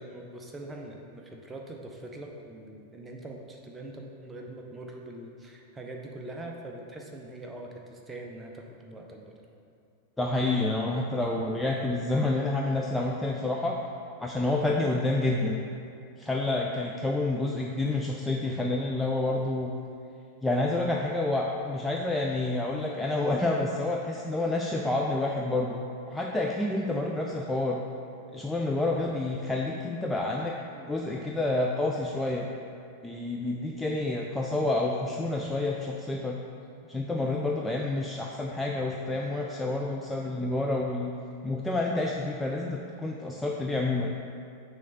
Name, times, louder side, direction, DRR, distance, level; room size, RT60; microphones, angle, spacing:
voice 1, 0.0-9.4, right 1 dB, 15° right, 0 dB, 0.8 m, -43 dB
voice 2, 10.2-13.8 14.2-15.6 16.2-19.7 20.4-25.8 26.1-27.8 28.3-32.5 33.0-36.4 36.9-41.1 41.4-44.1, left 2 dB, 5° left, -1 dB, 0.4 m, -29 dB
6.3 x 3.3 x 5.4 m, 2.6 s
figure-of-eight pair, 90°, 0 cm